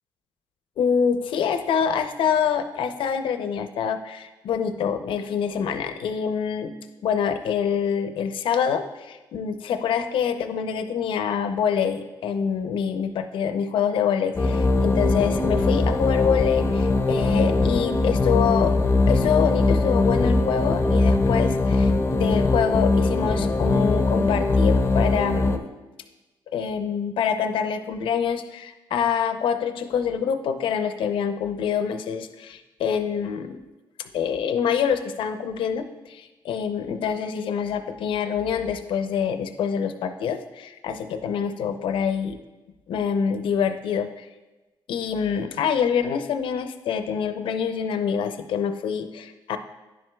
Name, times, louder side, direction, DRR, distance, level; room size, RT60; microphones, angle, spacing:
voice 1, 0.8-6.7 7.0-18.7 19.1-25.7 26.5-33.6 34.0-42.4 42.9-44.3 44.9-49.6, left 7 dB, 70° left, 9 dB, 0.5 m, -26 dB
sound 1, 14.3-25.6, left 3 dB, 30° left, 0.5 m, -21 dB
10.5 x 7.6 x 2.2 m, 1.1 s
cardioid pair, 110°, 9 cm